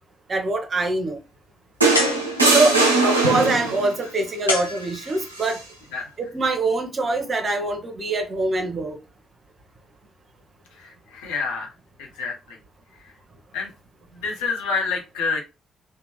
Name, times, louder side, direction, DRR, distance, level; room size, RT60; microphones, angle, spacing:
voice 1, 0.3-1.2 2.5-5.6 6.2-9.0, right 2 dB, 40° right, 0.8 m, -24 dB
sound 1, 1.8-3.9 5.3-5.6, right 2 dB, 85° right, 0.4 m, -20 dB
sound 2, 1.9-2.8 4.5-5.5, left 2 dB, 85° left, 0.4 m, -27 dB
voice 2, 10.8-11.7 12.0-12.6 13.5-13.7 14.1-15.4, left 4 dB, 70° left, 0.8 m, -28 dB
2.8 x 2.2 x 3.0 m
figure-of-eight pair, 40°, 0 cm